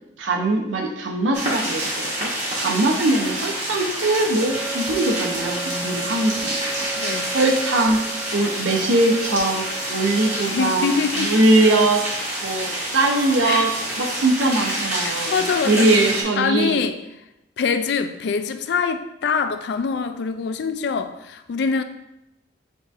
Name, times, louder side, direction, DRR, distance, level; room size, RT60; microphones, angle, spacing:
voice 1, 0.2-2.3 2.6-8.0 8.3-12.0 12.4-12.7 12.9-13.7 14.0-16.8, right 2 dB, 85° right, 3 dB, 0.7 m, -21 dB
sound 1, 1.3-16.2, right 1 dB, 35° right, 1.0 m, -28 dB
sound 2, 4.4-10.5, right 4 dB, 20° right, 0.4 m, -35 dB
voice 2, 7.0-7.4 10.4-11.3 13.4-13.7 15.0-15.9 16.4-17.0 17.6-21.8, left 5 dB, 60° left, 9 dB, 0.3 m, -24 dB
7.1 x 2.7 x 2.4 m, 0.90 s
head